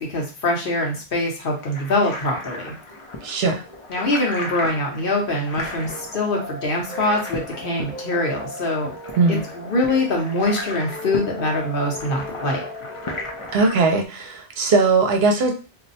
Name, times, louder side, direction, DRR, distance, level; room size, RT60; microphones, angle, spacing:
voice 1, 0.0-2.7 3.9-8.9 9.3-12.6, left 2 dB, 55° left, 0 dB, 1.0 m, -24 dB
sound 1, 1.5-13.9, left 2 dB, 35° left, 0.5 m, -36 dB
voice 2, 3.2-3.6 9.2-9.4 13.5-15.5, right 4 dB, 70° right, 3 dB, 0.8 m, -19 dB
sound 2, 5.5-14.0, left 1 dB, 5° right, 0.6 m, -37 dB
2.6 x 2.1 x 4.0 m, 0.35 s
omnidirectional pair, 1.1 m